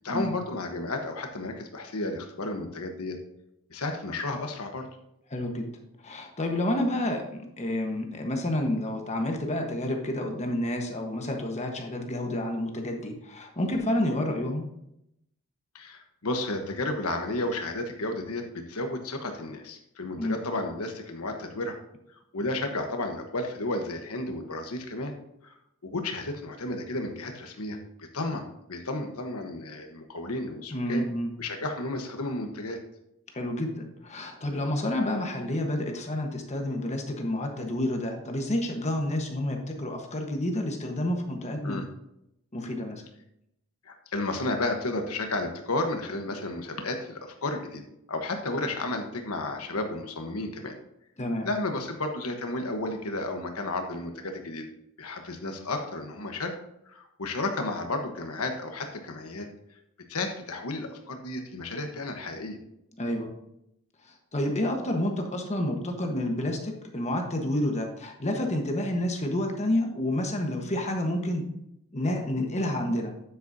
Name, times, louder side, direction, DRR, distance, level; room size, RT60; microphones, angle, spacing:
voice 1, 0.0-3.2 3.7-4.9 15.7-21.8 22.1-25.1 25.4-25.5 25.8-31.0 31.4-32.8 41.6-41.9 43.8-47.8 48.1-50.8 51.4-54.6 55.0-56.5 56.9-59.5 60.1-62.6, left 2 dB, 85° left, 4 dB, 1.2 m, -32 dB
voice 2, 5.3-5.7 6.0-14.6 20.2-20.4 30.7-31.3 33.3-41.8 42.5-43.0 51.2-51.5 63.0-63.3 64.3-71.5 71.9-73.1, left 1 dB, 30° left, 3 dB, 1.3 m, -29 dB
9.3 x 8.5 x 2.7 m, 0.80 s
head